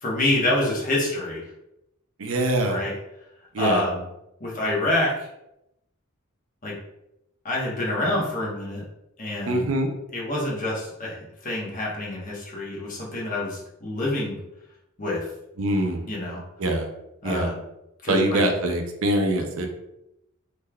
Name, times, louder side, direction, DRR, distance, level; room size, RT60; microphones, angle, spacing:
voice 1, 0.0-1.4 2.7-2.9 3.6-4.0 4.4-5.1 6.6-6.7 7.4-8.8 9.2-9.7 10.1-11.2 11.4-14.4 15.0-15.2 16.1-16.4 17.2-17.6 18.0-18.4, left 1 dB, 40° left, -4 dB, 1.0 m, -26 dB
voice 2, 2.2-2.8 3.5-3.8 9.5-9.9 15.6-16.1 16.6-16.9 17.2-17.5 18.1-19.7, right 1 dB, 70° right, 4 dB, 0.5 m, -23 dB
3.5 x 3.2 x 2.2 m, 0.85 s
head